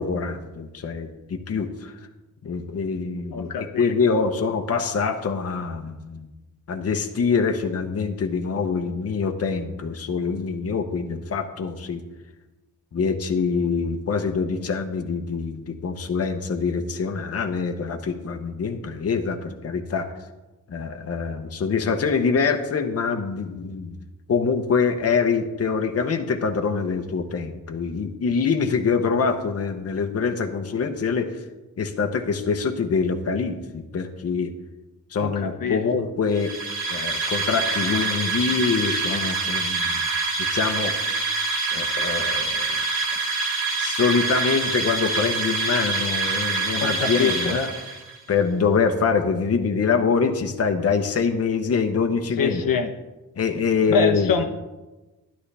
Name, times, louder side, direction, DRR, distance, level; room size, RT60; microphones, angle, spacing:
voice 1, 0.0-1.9 2.4-3.5 3.8-6.3 6.7-12.0 12.9-20.1 20.7-24.0 24.3-31.3 31.8-34.5 35.1-36.5 36.9-40.1 40.4-41.4 41.7-42.8 43.1-43.4 43.8-47.7 48.3-52.6 53.4-54.3, left 5 dB, 45° left, 6 dB, 0.9 m, -25 dB
voice 2, 3.3-4.2 35.2-36.1 46.8-47.6 52.4-52.9 53.9-54.4, left 5 dB, 65° left, 4 dB, 0.9 m, -25 dB
sound 1, 36.3-48.2, right 3 dB, 80° right, 1.8 m, -26 dB
12.0 x 11.5 x 3.4 m, 1.1 s
wide cardioid pair, 150°, 35 cm